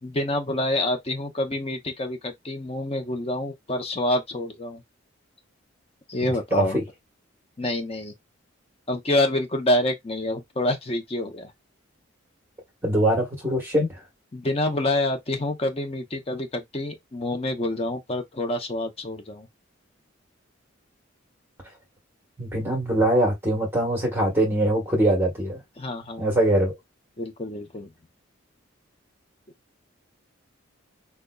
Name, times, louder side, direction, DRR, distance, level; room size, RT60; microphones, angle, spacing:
voice 1, 0.0-4.8 6.1-6.8 7.6-8.1 8.9-11.5 14.3-19.5 25.8-26.4 27.2-27.9, left 1 dB, 30° left, 0.6 m, -27 dB
voice 2, 6.2-6.8 12.8-14.0 22.4-25.6 26.2-26.7, right 1 dB, 10° right, 1.1 m, -23 dB
5.0 x 2.2 x 2.2 m
head